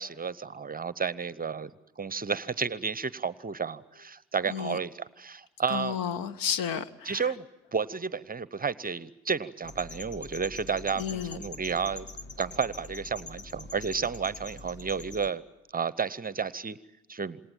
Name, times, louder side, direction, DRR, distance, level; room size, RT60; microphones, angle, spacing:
voice 1, 0.0-1.7 2.0-6.0 7.0-7.4 7.7-12.1 12.4-15.4 15.7-16.8 17.1-17.4, right 5 dB, 25° right, 18 dB, 0.8 m, -32 dB
voice 2, 4.5-4.8 5.7-7.3 11.0-11.4, left 8 dB, 60° left, 17 dB, 1.3 m, -32 dB
sound 1, 9.6-15.3, left 2 dB, 30° left, 1.5 m, -44 dB
27.5 x 20.0 x 8.9 m, 0.93 s
hypercardioid pair, 55°, 38 cm